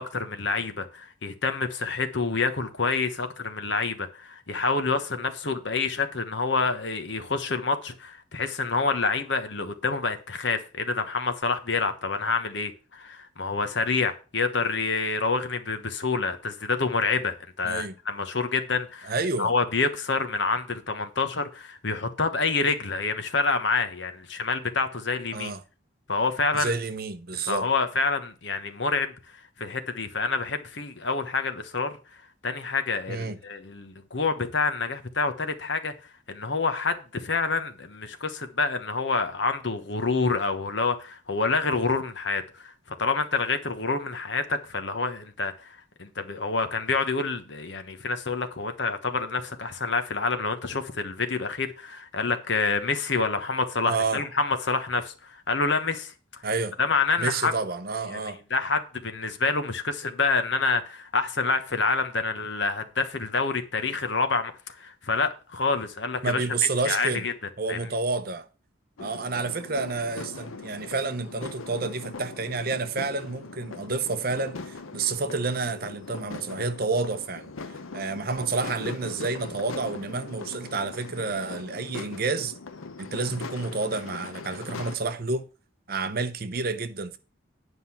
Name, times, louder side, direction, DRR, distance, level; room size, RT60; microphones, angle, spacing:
voice 1, 0.0-19.1 19.4-25.5 26.1-26.7 27.4-29.1 29.6-32.0 32.4-35.9 36.3-42.7 43.0-56.4 56.8-57.5 58.1-66.4 66.8-67.3 67.7-67.8, left 4 dB, 60° left, 1.2 m, -27 dB
voice 2, 17.6-17.9 19.0-19.5 25.3-25.6 26.5-27.6 33.1-33.4 53.9-54.2 56.4-56.7 57.2-58.4 66.2-67.3 67.6-68.5 69.0-82.5 83.0-85.5 85.9-87.2, right 3 dB, 45° right, 0.8 m, -29 dB
sound 1, 69.0-85.0, left 4 dB, 85° left, 0.8 m, -40 dB
9.8 x 5.3 x 5.8 m
head